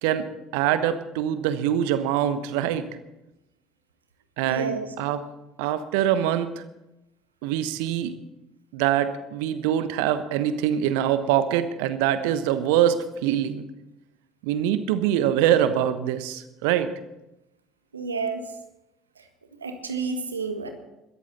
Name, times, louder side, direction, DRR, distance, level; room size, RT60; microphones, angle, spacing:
voice 1, 0.5-2.9 4.4-5.2 5.6-6.6 7.4-8.1 8.7-13.6 14.4-16.9, right 10 dB, 65° right, 12 dB, 1.1 m, -24 dB
voice 2, 4.4-4.9 17.9-18.4 19.6-20.7, right 4 dB, 80° right, 6 dB, 1.6 m, -30 dB
21.0 x 14.0 x 4.1 m, 0.93 s
figure-of-eight pair, 60°, 0 cm